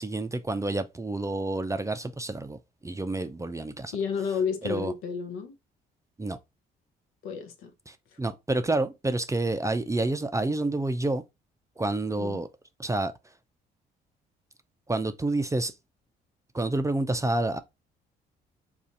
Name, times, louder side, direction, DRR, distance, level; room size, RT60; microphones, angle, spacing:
voice 1, 0.0-4.0 4.6-4.9 6.2-6.4 7.9-11.2 11.8-12.5 12.8-13.1 14.9-15.7 16.5-17.6, right 2 dB, 15° right, 0.4 m, -29 dB
voice 2, 3.9-5.5 7.2-7.7 12.1-12.4, left 6 dB, 75° left, 0.8 m, -31 dB
2.5 x 2.4 x 4.0 m
supercardioid pair, 60°, 21 cm